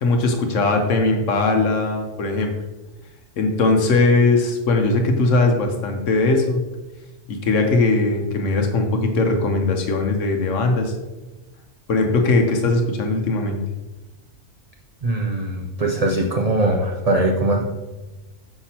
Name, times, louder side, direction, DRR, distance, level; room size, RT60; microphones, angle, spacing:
voice 1, 0.0-2.5 3.4-6.6 7.3-10.9 11.9-13.6, left 3 dB, 85° left, 4 dB, 1.1 m, -19 dB
voice 2, 15.0-17.7, right 1 dB, 45° right, 1 dB, 0.5 m, -21 dB
6.7 x 5.7 x 2.8 m, 1.1 s
omnidirectional pair, 1.3 m